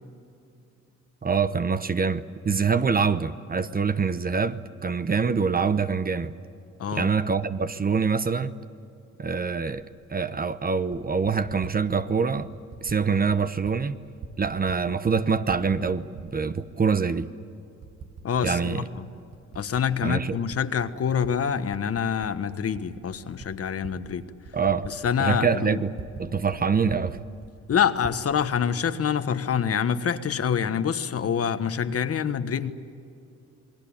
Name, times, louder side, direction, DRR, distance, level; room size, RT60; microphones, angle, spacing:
voice 1, 1.2-6.3 6.9-8.6 9.2-9.8 10.1-12.5 12.8-13.9 14.4-17.3 18.4-18.8 20.0-20.4 24.5-24.9 25.2-27.2, right 5 dB, 30° right, 1.0 m, -25 dB
voice 2, 6.8-7.1 18.2-19.1 19.5-24.2 24.8-25.8 27.7-32.7, left 7 dB, 50° left, 1.4 m, -26 dB
Typing, 9.8-9.9 10.7-11.8 12.4-13.0 13.3-13.8 14.0-15.1 15.4-16.6 17.2-17.3 17.8-18.7 18.9-21.3 21.7-26.3 26.5-26.6 26.9-28.2, right 5 dB, 60° right, 2.1 m, -44 dB
28.5 x 19.5 x 8.7 m
cardioid pair, 90°, 30 cm